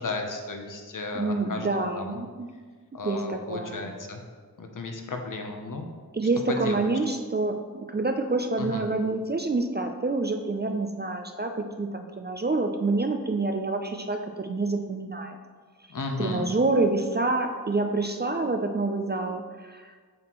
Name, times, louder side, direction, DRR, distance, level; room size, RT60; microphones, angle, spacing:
voice 1, 0.0-2.2 2.9-4.2 4.6-5.9 6.5-6.9 8.6-8.8 15.9-16.5, left 3 dB, 55° left, 3 dB, 0.8 m, -34 dB
voice 2, 1.1-2.5 3.0-3.9 6.1-15.4 16.2-19.9, right 3 dB, 30° right, 5 dB, 0.4 m, -27 dB
7.3 x 4.2 x 3.0 m, 1.5 s
wide cardioid pair, 55°, 38 cm